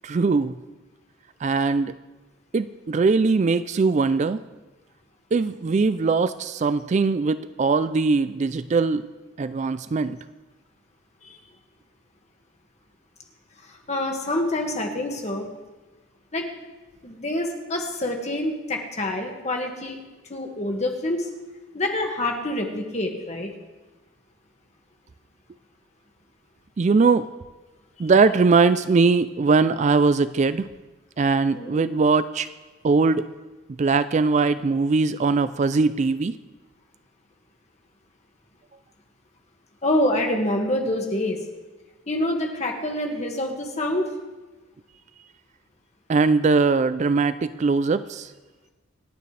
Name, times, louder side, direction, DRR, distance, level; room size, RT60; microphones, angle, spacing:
voice 1, 0.0-0.5 1.4-2.0 2.5-4.4 5.3-9.0 9.4-10.2 26.8-27.3 28.0-30.7 31.2-32.5 32.8-33.2 33.8-36.3 46.1-48.3, right 4 dB, 35° right, 14 dB, 0.3 m, -21 dB
voice 2, 13.7-15.5 16.3-16.5 17.0-20.0 20.3-21.3 21.7-23.5 28.0-28.1 31.5-31.8 39.8-41.4 42.1-44.1, left 1 dB, 35° left, 1 dB, 1.9 m, -26 dB
27.5 x 9.3 x 3.3 m, 1.2 s
head